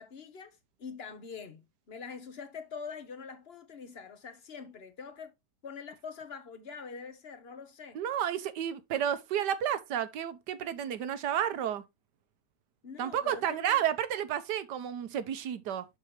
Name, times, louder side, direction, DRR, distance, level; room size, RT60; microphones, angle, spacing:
voice 1, 0.0-5.3 5.6-8.0 12.8-13.8, left 5 dB, 40° left, 1.3 m, -44 dB
voice 2, 7.9-11.8 13.0-15.8, right 10 dB, 85° right, 1.5 m, -31 dB
7.0 x 6.7 x 3.2 m
omnidirectional pair, 1.8 m